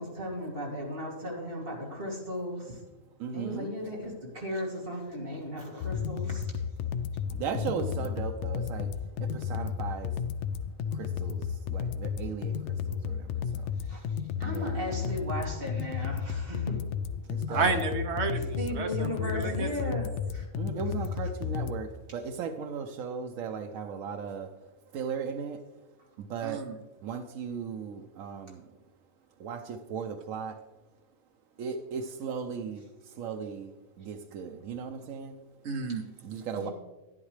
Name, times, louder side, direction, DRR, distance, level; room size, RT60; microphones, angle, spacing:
voice 1, 0.0-2.8 3.3-6.5 7.5-8.0 13.8-16.8 17.5-17.7 18.6-20.5 36.5-36.7, equal, 45° right, -3 dB, 2.6 m, -36 dB
voice 2, 3.2-3.7 7.3-8.9 9.2-10.2 10.9-13.7 14.4-14.9 17.3-17.7 20.6-24.5 24.9-25.7 26.2-26.7 27.0-28.7 29.4-30.6 31.6-35.4 36.2-36.7, right 6 dB, 85° right, 4 dB, 1.1 m, -37 dB
sound 1, 5.8-21.8, left 7 dB, 70° left, 0.8 m, -33 dB
voice 3, 17.5-19.9 26.4-26.7 35.6-36.1, right 4 dB, 60° right, 6 dB, 1.1 m, -31 dB
11.0 x 11.0 x 3.2 m, 1.1 s
omnidirectional pair, 1.4 m